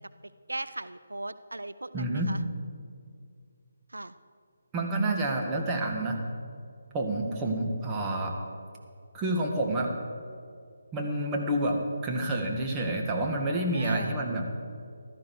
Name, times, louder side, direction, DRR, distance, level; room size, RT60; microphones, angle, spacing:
voice 1, 0.5-2.4 3.9-4.1 13.7-14.1, right 2 dB, 85° right, 14 dB, 0.5 m, -38 dB
voice 2, 1.9-2.3 4.7-6.2 6.9-8.3 9.1-9.9 10.9-14.5, right 1 dB, 15° right, 0 dB, 1.7 m, -28 dB
15.0 x 13.0 x 4.7 m, 2.3 s
figure-of-eight pair, 150°, 0 cm